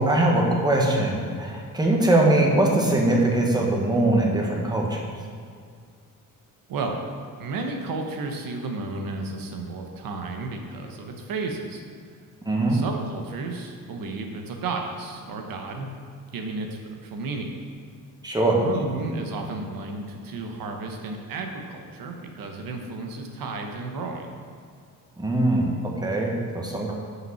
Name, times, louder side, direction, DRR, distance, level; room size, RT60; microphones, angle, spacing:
voice 1, 0.0-5.0 12.4-12.8 18.2-18.6 25.2-27.0, right 2 dB, 10° right, -1 dB, 1.3 m, -22 dB
voice 2, 6.7-7.0 7.4-11.8 12.7-15.9 16.3-17.5 18.5-24.3, right 3 dB, 70° right, 3 dB, 1.1 m, -33 dB
6.3 x 5.3 x 5.6 m, 2.2 s
cardioid pair, 110°, 35 cm